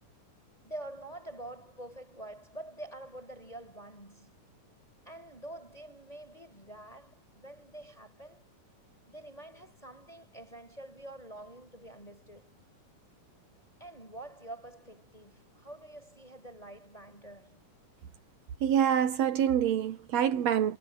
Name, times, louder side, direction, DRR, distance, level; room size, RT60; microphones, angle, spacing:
voice 1, 0.6-4.4 5.0-8.5 9.1-12.6 13.8-17.6, right 1 dB, 10° left, 6.2 m, -47 dB
voice 2, 18.6-20.8, right 9 dB, 65° right, 2.0 m, -26 dB
omnidirectional pair, 3.7 m